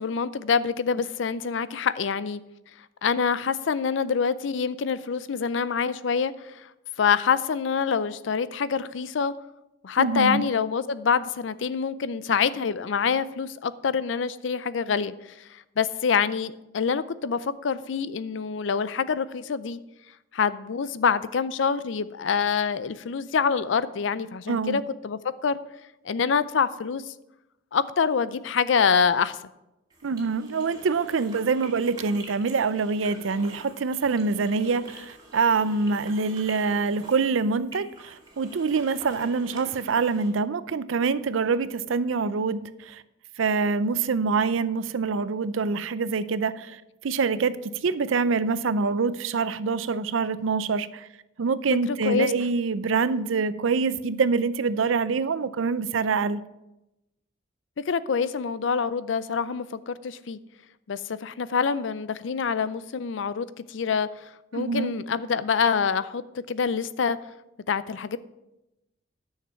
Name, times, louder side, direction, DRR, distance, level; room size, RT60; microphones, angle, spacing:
voice 1, 0.0-2.4 3.0-6.7 7.0-9.3 9.8-19.8 20.3-25.6 26.0-27.1 27.7-29.4 52.0-52.3 57.8-60.4 60.9-67.2 67.7-68.2, left 6 dB, 70° left, 16 dB, 0.5 m, -26 dB
voice 2, 10.0-10.4 24.5-24.8 30.0-43.0 43.4-51.1 51.4-56.4 64.5-64.9, right 4 dB, 90° right, 15 dB, 0.5 m, -25 dB
sound 1, 29.9-40.3, right 2 dB, 20° right, 2.4 m, -47 dB
10.0 x 6.5 x 5.6 m, 0.92 s
head